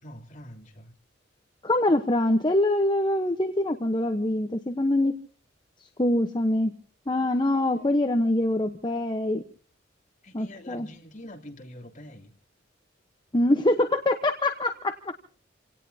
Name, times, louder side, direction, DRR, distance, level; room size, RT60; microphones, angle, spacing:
voice 1, 0.0-0.9 7.5-7.9 10.2-12.3, left 1 dB, 40° left, 1 dB, 3.2 m, -45 dB
voice 2, 1.6-5.2 6.0-6.7 7.1-9.4 10.3-10.9 13.3-14.9, left 1 dB, 25° left, 6 dB, 1.0 m, -24 dB
28.5 x 18.0 x 2.8 m, 0.41 s
head